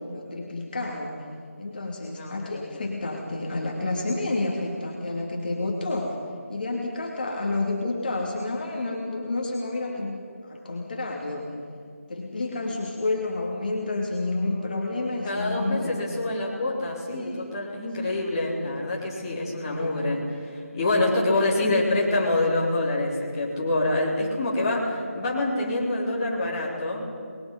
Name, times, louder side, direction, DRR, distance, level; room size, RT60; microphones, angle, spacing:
voice 1, 0.1-1.2 1.6-6.2 6.5-11.5 12.1-16.2 17.1-17.4 18.0-18.3 19.6-20.0 21.3-22.1, left 2 dB, 35° left, -1 dB, 3.1 m, -30 dB
voice 2, 2.1-2.8 15.2-27.1, left 2 dB, 20° left, -5 dB, 3.9 m, -26 dB
29.5 x 22.0 x 5.6 m, 2.2 s
figure-of-eight pair, 160°, 8 cm